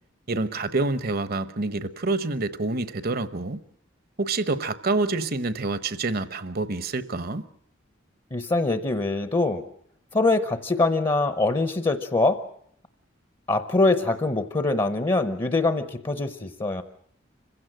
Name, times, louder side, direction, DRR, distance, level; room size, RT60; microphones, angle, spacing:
voice 1, 0.3-3.6 4.2-7.5, right 3 dB, 50° right, 1.0 m, -27 dB
voice 2, 8.3-9.6 10.1-12.4 13.5-16.8, left 2 dB, 25° left, 0.9 m, -23 dB
26.0 x 16.0 x 7.8 m
head